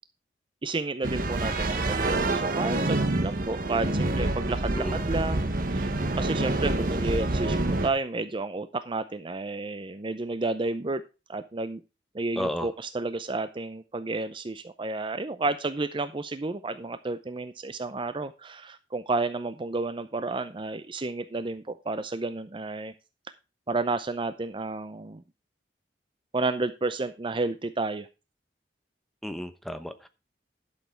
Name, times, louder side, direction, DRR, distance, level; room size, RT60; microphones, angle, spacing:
voice 1, 0.6-11.0 11.3-11.8 12.1-22.9 23.7-25.2 26.3-28.1, right 3 dB, 30° right, 11 dB, 0.6 m, -31 dB
sound 1, 1.0-7.9, right 2 dB, 50° right, 1.3 m, -27 dB
voice 2, 12.4-12.7 29.2-30.1, equal, ahead, 9 dB, 0.9 m, -33 dB
11.5 x 6.6 x 4.4 m, 0.29 s
head